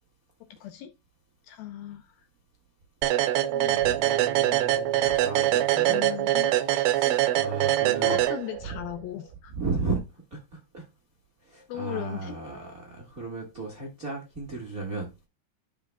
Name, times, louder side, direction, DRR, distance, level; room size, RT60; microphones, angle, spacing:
voice 1, 0.6-0.9 1.4-2.2 3.5-3.8 5.8-6.5 7.1-7.2 8.0-9.5 11.7-12.4, left 11 dB, 75° left, 2.4 m, -37 dB
sound 1, 3.0-8.8, right 13 dB, 85° right, 2.8 m, -24 dB
voice 2, 3.6-6.0 6.4-8.2 9.6-10.0 10.3-10.8 11.4-15.1, right 3 dB, 70° right, 0.8 m, -35 dB
12.5 x 5.9 x 2.3 m
omnidirectional pair, 4.8 m